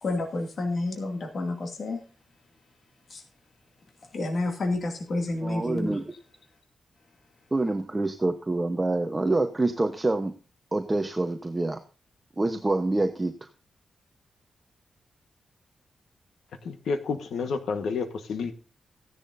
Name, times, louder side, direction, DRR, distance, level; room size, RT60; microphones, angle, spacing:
voice 1, 0.0-2.0 3.1-3.2 4.1-6.0, left 2 dB, 50° left, 2.3 m, -29 dB
voice 2, 5.4-6.1 7.5-10.3 10.7-11.8 12.4-13.3, right 2 dB, 15° right, 1.0 m, -26 dB
voice 3, 16.6-18.5, left 5 dB, 85° left, 1.3 m, -30 dB
15.5 x 11.0 x 2.6 m
wide cardioid pair, 135°, 0 cm